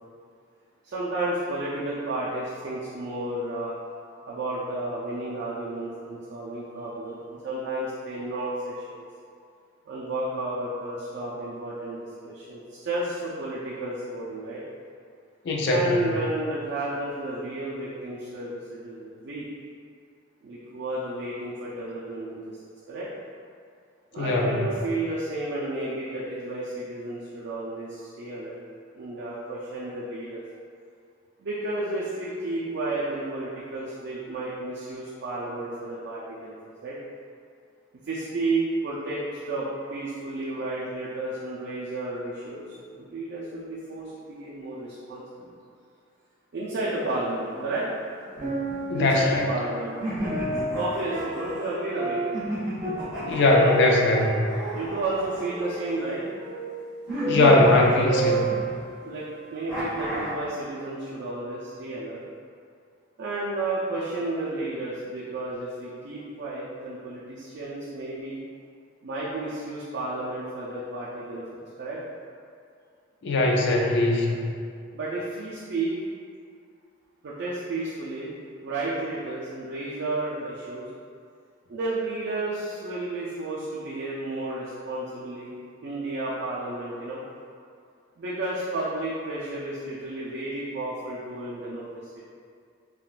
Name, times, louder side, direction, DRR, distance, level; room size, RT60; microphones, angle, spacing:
voice 1, 0.8-3.8 4.3-9.0 9.9-12.0 12.2-14.6 15.6-19.5 20.4-22.5 22.9-23.1 24.1-28.6 28.9-30.4 31.4-36.5 36.8-37.0 38.0-42.6 42.9-45.6 46.5-47.9 48.9-50.0 50.7-52.2 53.5-53.8 54.7-56.3 59.0-59.3 59.5-62.2 63.2-68.4 69.0-72.0 74.9-76.0 77.2-78.3 78.6-80.9 81.7-87.2 88.2-92.2, right 2 dB, 60° right, -7 dB, 0.4 m, -32 dB
voice 2, 15.5-16.0 24.2-24.6 48.9-49.4 53.2-54.5 57.3-58.5 73.2-74.5, left 2 dB, 60° left, -1 dB, 0.4 m, -20 dB
sound 1, 46.9-47.8 48.2-59.3 59.8-59.9, right 2 dB, 20° right, 0.7 m, -32 dB
sound 2, 48.3-49.4 50.0-51.7 52.3-56.1 57.1-58.8 59.7-60.5, right 1 dB, 5° right, 1.3 m, -34 dB
3.5 x 2.3 x 2.4 m, 2.3 s
head